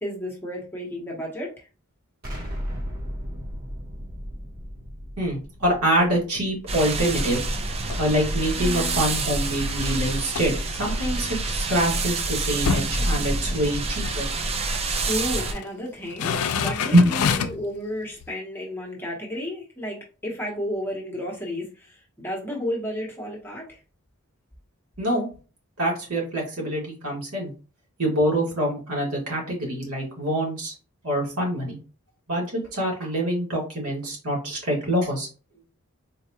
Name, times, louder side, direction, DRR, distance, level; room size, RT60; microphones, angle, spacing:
voice 1, 0.0-1.7 15.0-23.8, equal, 10° left, -1 dB, 0.8 m, -32 dB
Explosion, 2.2-7.1, equal, 40° right, 1.1 m, -36 dB
voice 2, 5.2-7.4 8.0-14.3 16.9-17.1 25.0-25.3 25.8-27.5 28.0-30.7 31.0-31.8 32.3-35.3, right 1 dB, 85° right, -3 dB, 1.6 m, -25 dB
sound 1, 6.7-15.5, right 2 dB, 25° right, 0.4 m, -27 dB
sound 2, 7.6-8.1 8.6-11.6 12.0-12.1 12.3-13.7 14.0-14.2 15.0-15.7 16.0-17.7 18.2-18.3, left 6 dB, 80° left, 0.4 m, -29 dB
4.0 x 2.3 x 2.7 m, 0.35 s
head